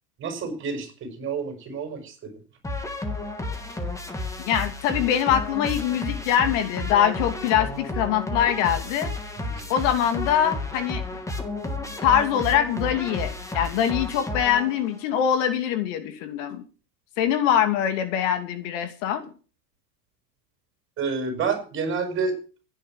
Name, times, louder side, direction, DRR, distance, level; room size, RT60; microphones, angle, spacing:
voice 1, 0.2-2.3 9.4-9.6 21.0-22.4, right 5 dB, 25° right, 7 dB, 6.4 m, -29 dB
sound 1, 2.6-15.0, left 2 dB, 5° left, 2.6 m, -32 dB
voice 2, 4.4-9.1 9.7-11.0 12.0-16.6 17.2-19.3, left 9 dB, 50° left, 8 dB, 2.8 m, -23 dB
15.5 x 10.0 x 7.6 m, 0.37 s
supercardioid pair, 140°, 48 cm